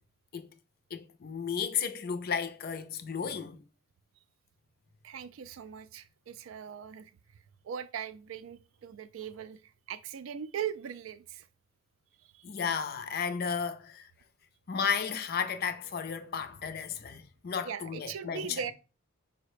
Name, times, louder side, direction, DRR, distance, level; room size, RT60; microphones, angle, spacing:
voice 1, 0.9-3.6 12.4-14.1 14.7-18.6, left 6 dB, 45° left, 0.4 m, -33 dB
voice 2, 5.0-11.5 12.2-12.4 17.6-18.7, right 8 dB, 70° right, 0.4 m, -40 dB
4.8 x 2.1 x 4.7 m
head